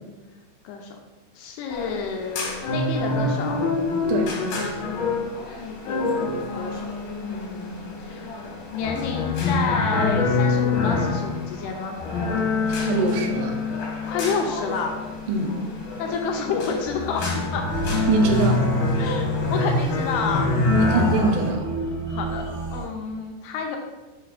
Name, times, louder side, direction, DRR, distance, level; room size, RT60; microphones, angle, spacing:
voice 1, 0.6-1.0 1.4-3.6 5.6-6.9 7.2-8.4 8.7-12.0 14.1-15.0 16.0-17.6 19.0-20.5 22.1-22.5 22.7-23.8, left 5 dB, 80° left, 2 dB, 2.4 m, -29 dB
sound 1, 1.7-21.5, left 3 dB, 65° left, 2.5 m, -26 dB
voice 2, 12.7-13.6 15.3-15.5 18.1-18.6 20.7-21.7, right 2 dB, 85° right, 3 dB, 3.1 m, -23 dB
sound 2, 17.7-22.8, right 2 dB, 50° right, 1.3 m, -31 dB
6.8 x 5.5 x 2.5 m, 1.2 s
omnidirectional pair, 4.9 m